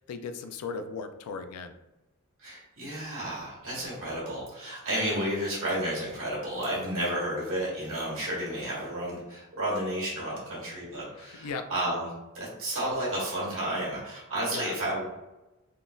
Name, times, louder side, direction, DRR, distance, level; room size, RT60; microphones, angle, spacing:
voice 1, 0.1-1.7 11.1-11.6 14.5-14.8, left 5 dB, 85° left, 9 dB, 0.3 m, -37 dB
voice 2, 2.4-15.0, right 1 dB, 65° right, -6 dB, 1.4 m, -32 dB
3.6 x 2.5 x 2.3 m, 1.0 s
head